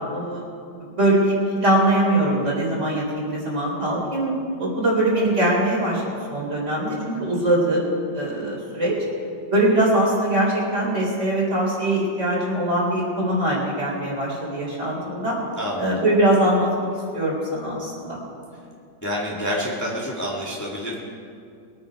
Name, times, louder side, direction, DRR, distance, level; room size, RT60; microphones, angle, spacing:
voice 1, 0.1-0.5 0.8-6.0 6.3-7.9 8.1-9.0 9.5-15.4 15.8-16.9 17.1-18.2, right 1 dB, 40° right, -4 dB, 4.0 m, -22 dB
voice 2, 15.6-16.0 19.0-21.0, equal, 10° left, -5 dB, 2.0 m, -28 dB
23.0 x 9.4 x 4.8 m, 2.4 s
omnidirectional pair, 1.9 m